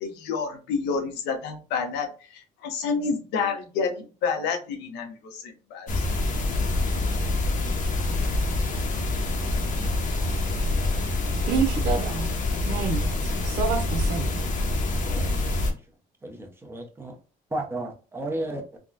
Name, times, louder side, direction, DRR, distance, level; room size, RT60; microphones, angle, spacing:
voice 1, 0.0-6.0, left 5 dB, 85° left, 0.9 m, -29 dB
sound 1, 5.9-15.7, left 2 dB, 50° left, 0.9 m, -26 dB
voice 2, 11.5-12.3 12.6-14.3, right 6 dB, 80° right, 0.7 m, -28 dB
voice 3, 15.0-15.8 16.2-17.2 17.5-18.8, right 1 dB, 15° right, 0.9 m, -34 dB
3.5 x 2.3 x 2.6 m
cardioid pair, 110°, 17 cm